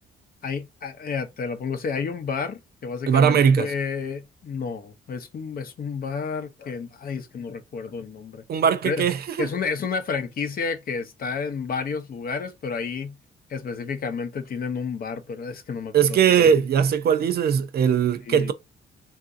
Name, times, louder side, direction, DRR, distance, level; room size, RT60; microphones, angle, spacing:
voice 1, 0.4-8.4 8.8-9.1 9.4-13.2 13.5-16.5 18.3-18.5, left 5 dB, 50° left, 0.6 m, -31 dB
voice 2, 3.1-3.7 8.5-9.5 15.9-18.5, right 7 dB, 55° right, 0.5 m, -20 dB
3.5 x 2.5 x 2.5 m
cardioid pair, 90°, 20 cm